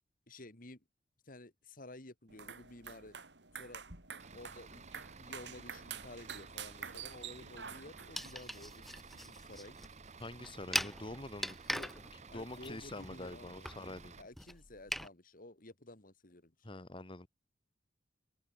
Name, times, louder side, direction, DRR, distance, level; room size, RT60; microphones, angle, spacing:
voice 1, 0.3-0.8 1.3-3.2 3.5-3.8 4.3-4.9 5.2-8.8 9.1-9.8 11.7-13.7 14.2-16.8, left 2 dB, 50° left, 2.7 m, -53 dB
sound 1, 2.3-8.3, right 7 dB, 75° right, 4.3 m, -48 dB
Bus / Idling, 4.2-14.2, right 4 dB, 40° right, 1.2 m, -54 dB
sound 2, 8.1-15.1, equal, ahead, 1.4 m, -42 dB
voice 2, 10.2-11.6 12.3-14.1 16.6-17.3, left 2 dB, 30° left, 1.7 m, -45 dB
head